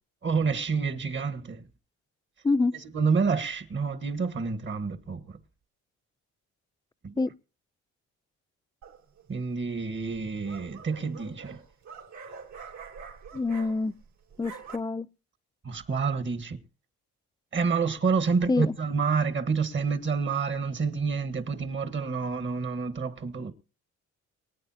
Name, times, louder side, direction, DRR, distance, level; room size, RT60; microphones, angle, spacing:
voice 1, 0.2-1.6 2.9-5.4 7.0-7.2 9.3-11.6 15.6-16.6 17.5-23.5, right 5 dB, 40° right, 1.6 m, -28 dB
voice 2, 2.4-2.8 7.2-7.3 13.3-13.9 14.4-15.1 18.5-18.7, left 3 dB, 15° left, 0.5 m, -26 dB
sound 1, 8.8-9.3 10.1-14.0 14.3-14.8, right 5 dB, 70° right, 3.5 m, -45 dB
24.0 x 9.1 x 2.9 m
cardioid pair, 90°, 30 cm